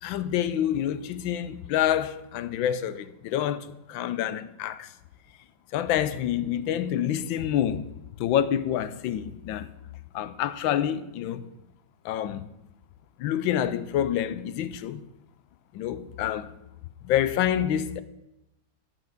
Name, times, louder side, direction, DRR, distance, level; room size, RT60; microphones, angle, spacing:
voice 1, 0.0-4.9 5.7-7.9 8.2-9.7 10.1-11.4 12.0-12.5 13.2-15.0 15.7-16.5 17.0-18.0, left 10 dB, 85° left, 1.4 m, -27 dB
10.5 x 6.0 x 7.8 m
omnidirectional pair, 2.1 m